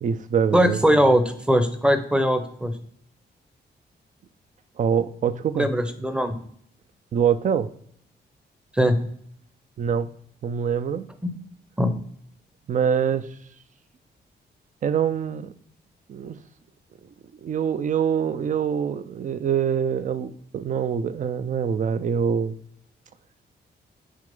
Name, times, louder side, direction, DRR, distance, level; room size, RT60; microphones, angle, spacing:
voice 1, 0.0-0.8 4.8-5.7 7.1-7.7 9.8-10.1 10.4-11.1 12.7-13.3 14.8-15.5 16.1-16.4 17.4-22.6, right 7 dB, 45° right, 14 dB, 0.4 m, -24 dB
voice 2, 0.5-2.7 5.6-6.4 8.7-9.0 11.2-11.3 11.8-11.9, equal, 5° right, 10 dB, 0.7 m, -20 dB
6.4 x 4.7 x 5.3 m, 0.66 s
wide cardioid pair, 140°, 18 cm